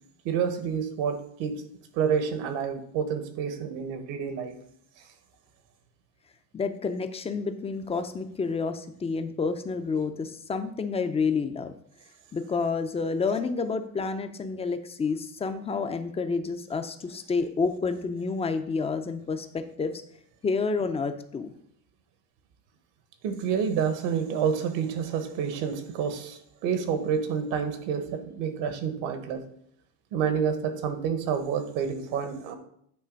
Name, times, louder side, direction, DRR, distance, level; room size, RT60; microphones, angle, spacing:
voice 1, 0.2-1.5 1.9-4.6 23.2-29.4 30.1-32.6, right 7 dB, 70° right, 8 dB, 1.3 m, -28 dB
voice 2, 6.5-11.7 12.3-19.9 20.4-21.5, left 4 dB, 15° left, 9 dB, 0.4 m, -29 dB
9.3 x 3.2 x 5.1 m, 0.68 s
cardioid pair, 130°, 44 cm